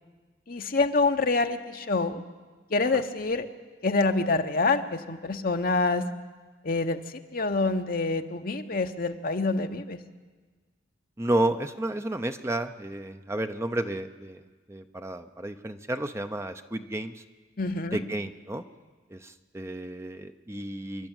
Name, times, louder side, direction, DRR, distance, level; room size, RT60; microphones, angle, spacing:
voice 1, 0.5-2.2 2.7-3.5 3.8-6.0 6.6-7.0 7.3-10.0 17.6-18.0, left 3 dB, 50° left, 6 dB, 1.0 m, -26 dB
voice 2, 11.2-14.4 14.7-17.2 17.9-18.6 19.1-21.1, right 1 dB, 15° right, 8 dB, 0.7 m, -31 dB
27.0 x 11.5 x 9.0 m, 1.4 s
head